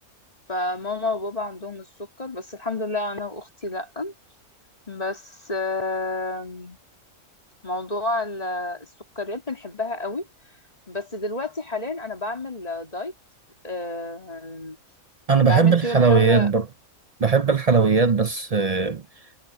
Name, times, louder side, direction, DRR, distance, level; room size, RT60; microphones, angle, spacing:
voice 1, 0.5-4.1 4.9-6.8 7.6-8.9 9.2-10.3 10.9-13.1 13.6-14.8 15.4-16.5, left 2 dB, 25° left, 3.0 m, -30 dB
voice 2, 15.3-16.6 17.2-19.0, right 5 dB, 55° right, 0.4 m, -19 dB
omnidirectional pair, 1.5 m